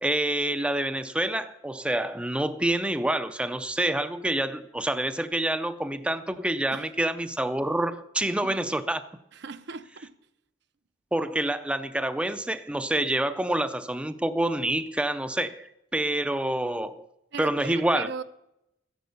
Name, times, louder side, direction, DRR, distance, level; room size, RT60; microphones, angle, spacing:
voice 1, 0.0-9.1 11.1-17.1 17.4-18.1, right 1 dB, 5° right, 0.5 m, -27 dB
voice 2, 8.4-8.8 9.3-10.1 17.3-18.2, right 5 dB, 65° right, 0.7 m, -39 dB
13.5 x 10.5 x 6.8 m
head